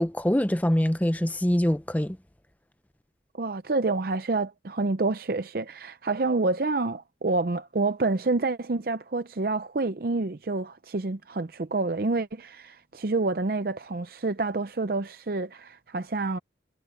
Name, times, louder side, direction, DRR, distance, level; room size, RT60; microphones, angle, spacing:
voice 1, 0.0-2.2, equal, 10° left, 0.7 m, -24 dB
voice 2, 3.3-16.4, right 3 dB, 55° right, 0.6 m, -28 dB
head